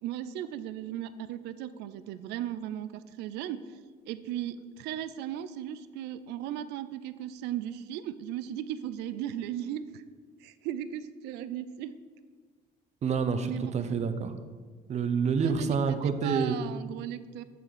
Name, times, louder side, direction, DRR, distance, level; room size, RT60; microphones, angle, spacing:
voice 1, 0.0-3.8 4.1-10.0 10.4-11.9 13.4-13.7 15.4-17.4, right 11 dB, 90° right, 14 dB, 0.4 m, -37 dB
voice 2, 13.0-14.3 14.9-16.6, right 5 dB, 40° right, 9 dB, 0.7 m, -28 dB
7.2 x 4.1 x 6.4 m, 1.5 s
cardioid pair, 110°, 17 cm